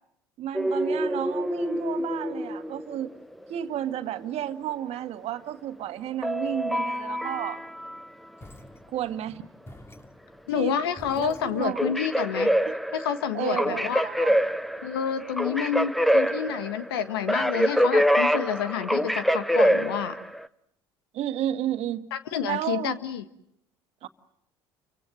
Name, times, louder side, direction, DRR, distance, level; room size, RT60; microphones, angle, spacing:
voice 1, 0.4-3.1 3.5-7.6 8.9-9.5 10.5-10.8 11.2-11.8 13.3-14.3 21.1-22.1 22.4-23.0 24.0-24.1, right 11 dB, 55° right, 1.8 m, -32 dB
sound 1, 0.5-3.4 6.2-8.0 11.6-20.5, equal, ahead, 1.0 m, -25 dB
sound 2, 8.4-11.9, left 1 dB, 20° left, 2.8 m, -49 dB
voice 2, 10.5-12.5 12.9-14.0 14.8-20.2 22.1-23.2, left 8 dB, 80° left, 1.6 m, -29 dB
29.5 x 25.0 x 7.7 m
hypercardioid pair, 65°, 12 cm